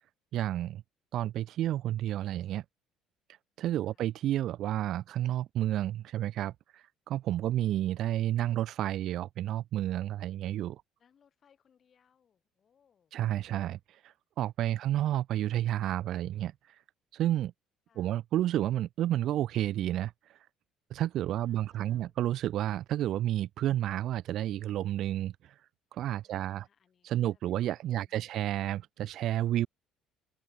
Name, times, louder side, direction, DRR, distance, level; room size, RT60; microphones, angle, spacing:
voice 1, 0.3-0.8 1.1-2.6 3.6-10.8 13.1-16.8 17.1-17.5 18.0-20.4 20.9-25.5 25.9-26.7 27.0-29.7, right 13 dB, 55° right, 0.4 m, -31 dB
voice 2, 3.7-4.0 7.4-7.9 11.0-13.1 14.6-15.0 17.9-18.2 21.3-22.2 26.2-28.4, left 7 dB, 30° left, 3.8 m, -69 dB
open air
cardioid pair, 155°, 0 cm